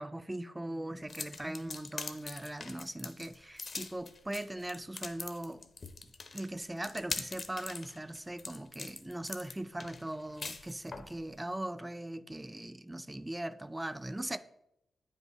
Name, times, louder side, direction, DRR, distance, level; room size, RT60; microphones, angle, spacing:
voice 1, 0.0-5.6 6.3-14.4, right 1 dB, 15° right, 0.4 m, -40 dB
sound 1, 1.1-11.1, left 4 dB, 50° left, 0.6 m, -43 dB
8.9 x 5.4 x 3.0 m
cardioid pair, 60°, 0 cm